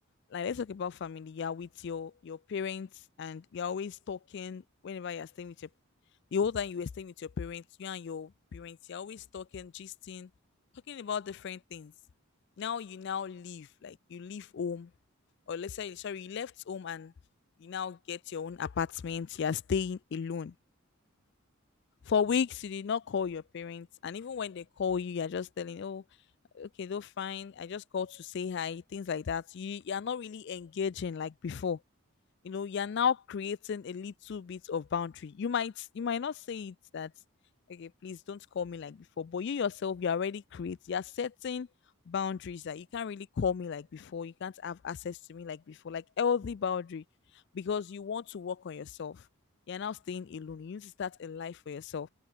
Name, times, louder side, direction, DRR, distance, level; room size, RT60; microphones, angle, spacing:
voice 1, 0.3-2.9 3.2-5.7 6.3-10.3 10.9-11.9 12.6-14.9 15.5-17.1 17.6-20.5 22.1-26.0 26.5-31.8 32.4-37.1 37.7-41.7 42.1-47.0 47.5-49.2 49.7-52.1, left 6 dB, 55° left, 0.3 m, -35 dB
head